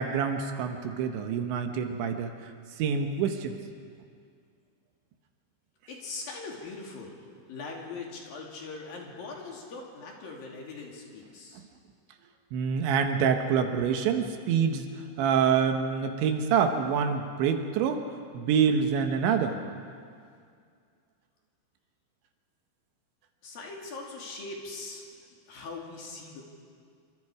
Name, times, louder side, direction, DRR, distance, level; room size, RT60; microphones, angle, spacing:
voice 1, 0.0-2.5 2.8-3.6 12.5-14.9 15.2-18.0 18.3-19.6, right 7 dB, 75° right, 5 dB, 3.5 m, -26 dB
voice 2, 5.9-11.6 23.4-25.0 25.5-26.4, left 3 dB, 55° left, -1 dB, 4.0 m, -41 dB
27.5 x 25.5 x 4.9 m, 2.2 s
omnidirectional pair, 5.4 m